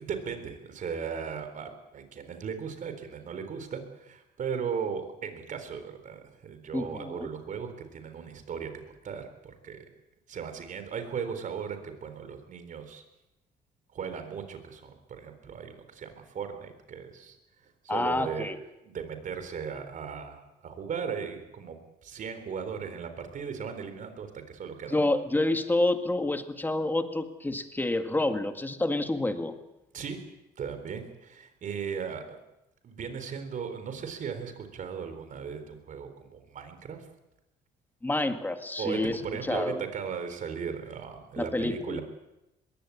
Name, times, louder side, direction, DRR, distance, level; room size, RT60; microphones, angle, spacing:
voice 1, 0.0-8.7 9.0-9.8 10.3-13.0 13.9-17.4 17.6-18.5 18.8-21.8 22.0-25.0 29.9-30.2 30.6-32.4 32.8-37.0 38.8-42.0, right 6 dB, 50° right, 8 dB, 3.9 m, -37 dB
voice 2, 6.7-7.3 17.9-18.6 24.9-29.5 38.0-39.2 39.5-39.8 41.4-42.0, left 2 dB, 10° left, 8 dB, 1.8 m, -28 dB
21.0 x 16.5 x 8.5 m, 0.94 s
cardioid pair, 110°, 17 cm